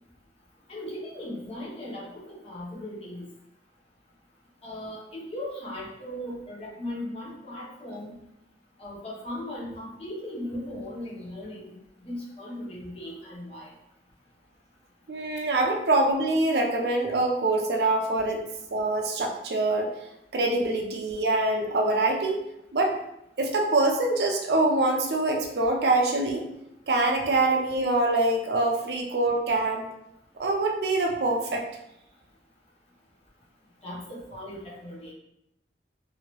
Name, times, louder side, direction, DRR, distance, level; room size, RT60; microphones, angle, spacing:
voice 1, 0.7-3.3 4.6-8.1 8.8-13.7 33.8-35.1, left 1 dB, 35° left, -5 dB, 0.9 m, -38 dB
voice 2, 15.1-19.9 20.3-22.4 22.7-23.0 23.4-26.4 26.9-29.9 30.4-31.7, right 2 dB, 65° right, 1 dB, 0.5 m, -24 dB
2.8 x 2.7 x 2.9 m, 0.81 s
head